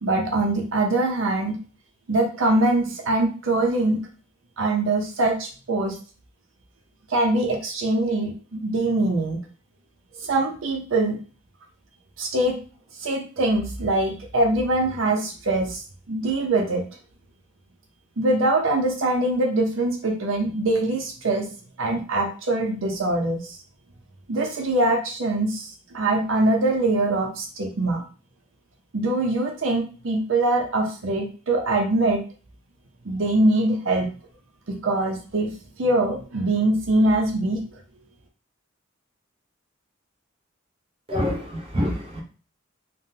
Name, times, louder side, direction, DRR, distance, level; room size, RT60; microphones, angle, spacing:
voice 1, 0.0-1.6 2.1-4.0 4.6-6.0 7.1-9.4 10.2-11.2 12.2-12.6 13.0-15.8 16.1-16.8 18.2-21.5 21.8-23.4 24.3-28.0 28.9-32.2 33.0-34.1 34.7-35.5 35.8-37.6, right 2 dB, 70° right, 2 dB, 0.6 m, -23 dB
voice 2, 41.1-42.2, left 1 dB, 30° right, 0 dB, 0.7 m, -26 dB
3.4 x 2.2 x 2.7 m, 0.37 s
head